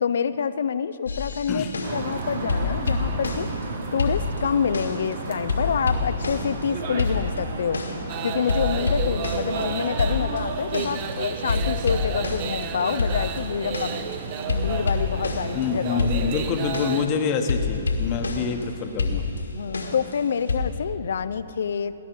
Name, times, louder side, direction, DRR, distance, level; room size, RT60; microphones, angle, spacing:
voice 1, 0.0-3.5 3.9-7.8 8.2-14.0 14.5-16.3 19.5-21.9, left 7 dB, 65° left, 14 dB, 0.5 m, -27 dB
sound 1, 1.1-2.2 2.5-3.7 4.0-5.1 5.5-6.7 7.0-8.1 8.5-11.1 11.5-15.7 16.0-18.6 19.0-20.6, left 4 dB, 85° left, 1.8 m, -28 dB
sound 2, 1.8-16.8, right 3 dB, 55° right, 1.4 m, -34 dB
sound 3, 8.1-17.1, right 9 dB, 35° right, 0.6 m, -34 dB
voice 2, 15.5-19.2, left 5 dB, 30° left, 5 dB, 1.2 m, -26 dB
19.5 x 10.5 x 4.6 m, 2.9 s
hypercardioid pair, 130°, 0 cm